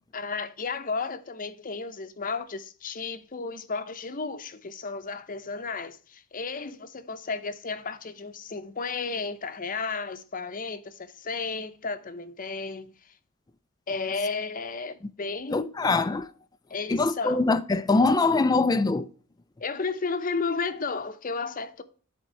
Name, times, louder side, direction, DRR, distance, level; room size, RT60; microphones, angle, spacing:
voice 1, 0.1-13.1 13.9-15.7 16.7-17.4 19.6-21.8, left 4 dB, 40° left, 0.7 m, -33 dB
voice 2, 15.5-16.3 16.9-19.1, left 3 dB, 15° left, 0.4 m, -23 dB
11.0 x 4.4 x 4.4 m
head